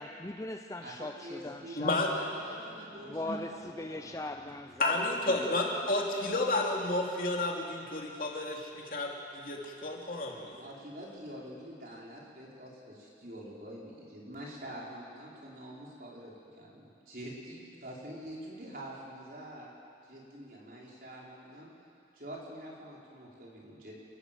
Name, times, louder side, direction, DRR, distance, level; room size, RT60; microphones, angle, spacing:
voice 1, 0.0-1.9 3.0-5.1 5.4-5.6, left 2 dB, 20° left, 0.5 m, -40 dB
voice 2, 0.8-4.2 10.6-16.3 16.6-19.7 20.1-21.7 22.1-23.9, right 1 dB, 55° right, 5.0 m, -46 dB
voice 3, 1.7-2.1 3.2-3.4 4.8-10.6, left 2 dB, 50° left, 2.9 m, -31 dB
29.5 x 13.0 x 7.7 m
head